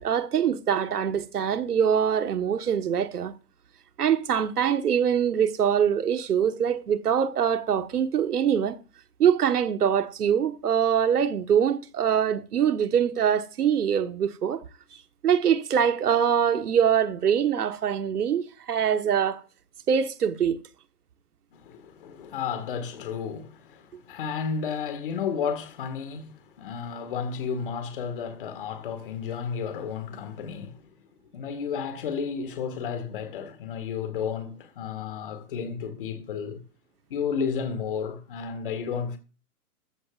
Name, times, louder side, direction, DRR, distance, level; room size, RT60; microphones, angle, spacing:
voice 1, 0.0-3.3 4.0-8.8 9.2-14.6 15.2-19.4 19.9-20.6, right 8 dB, 80° right, 1.5 m, -23 dB
voice 2, 21.5-30.8 31.3-36.6 37.1-39.2, left 6 dB, 35° left, 1.9 m, -32 dB
14.5 x 14.0 x 2.5 m
hypercardioid pair, 170°, 46 cm